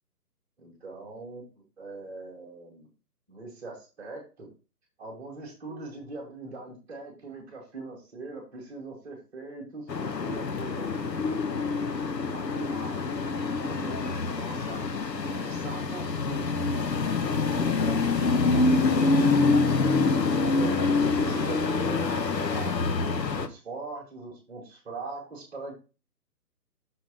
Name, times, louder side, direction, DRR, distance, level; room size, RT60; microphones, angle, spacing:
voice 1, 0.6-2.9 3.3-4.5 5.0-10.9 11.5-13.2 13.6-14.8 15.2-16.8 17.2-18.0 18.3-20.1 20.4-22.8 23.1-25.7, right 3 dB, 5° right, -6 dB, 1.2 m, -41 dB
sound 1, 9.9-23.5, left 3 dB, 85° left, 0.9 m, -26 dB
6.0 x 3.2 x 5.1 m, 0.32 s
figure-of-eight pair, 150°, 48 cm